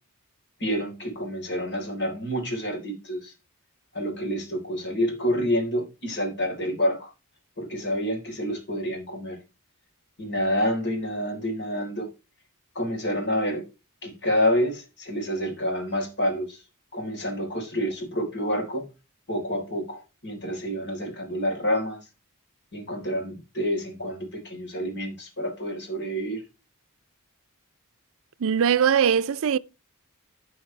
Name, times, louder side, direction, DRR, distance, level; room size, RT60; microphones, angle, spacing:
voice 1, 0.6-3.3 3.9-7.1 7.6-9.4 10.2-12.1 12.8-13.6 14.0-16.6 16.9-18.9 19.3-22.0 22.7-26.4, equal, 55° left, 4.0 m, -28 dB
voice 2, 28.4-29.6, right 7 dB, 65° right, 0.5 m, -21 dB
15.5 x 5.3 x 3.3 m
head